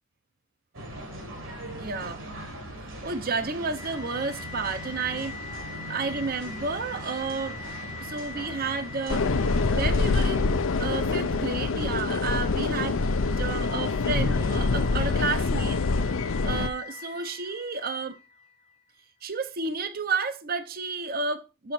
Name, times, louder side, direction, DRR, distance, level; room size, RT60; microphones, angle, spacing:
sound 1, 0.7-10.0, right 1 dB, 65° right, 2.3 m, -40 dB
voice 1, 1.8-2.3 2.8-5.3 5.9-7.6 8.0-9.3 9.7-13.0 13.4-18.2 19.2-21.7, right 4 dB, 45° right, 0.7 m, -31 dB
sound 2, 3.6-18.7, left 4 dB, 85° right, 2.3 m, -44 dB
sound 3, 9.1-16.7, left 4 dB, 65° left, 0.5 m, -25 dB
6.7 x 6.4 x 4.3 m
head